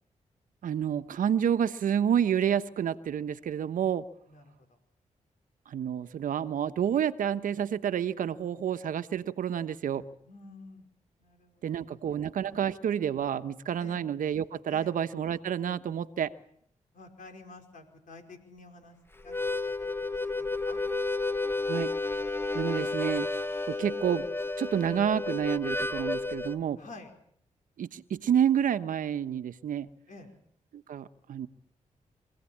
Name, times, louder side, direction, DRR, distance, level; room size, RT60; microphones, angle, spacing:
voice 1, 0.6-4.0 5.7-10.0 11.6-16.3 21.7-21.9 22.5-23.3 23.6-24.3 24.6-26.8 27.8-29.9 30.7-31.5, right 9 dB, 80° right, 11 dB, 1.1 m, -29 dB
voice 2, 4.3-4.7 10.2-10.8 11.2-12.2 13.8-14.0 14.7-14.9 16.9-19.0 19.2-20.8 26.8-27.1 30.1-30.3, left 3 dB, 70° left, 4 dB, 5.1 m, -50 dB
Harmonica, 19.2-26.6, left 3 dB, 15° left, 1.1 m, -31 dB
25.5 x 16.5 x 8.7 m, 0.67 s
cardioid pair, 65°, 14 cm